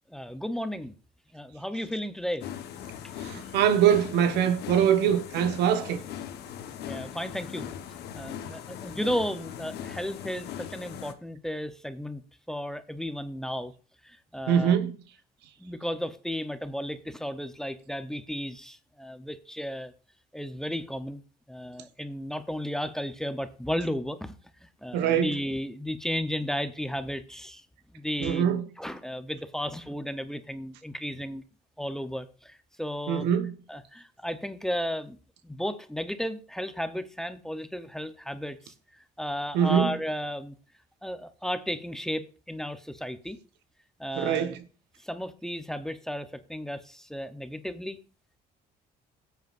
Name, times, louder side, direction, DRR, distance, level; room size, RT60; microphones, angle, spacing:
voice 1, 0.1-0.9 1.3-2.5 2.9-3.1 6.8-7.8 8.1-12.2 12.5-13.7 14.0-14.9 15.6-19.9 20.3-21.2 21.5-24.4 24.6-27.7 27.9-31.4 31.8-33.3 33.7-35.2 35.4-40.5 41.0-43.4 44.0-44.6 45.0-48.0, equal, 5° left, 0.8 m, -34 dB
sound 1, 2.4-11.1, left 9 dB, 75° left, 1.2 m, -40 dB
voice 2, 3.2-6.0 14.5-14.9 24.9-25.3 28.2-28.6 33.1-33.5 39.5-39.9 44.2-44.6, right 9 dB, 85° right, 1.2 m, -23 dB
19.5 x 8.1 x 2.6 m
cardioid pair, 110°, 17 cm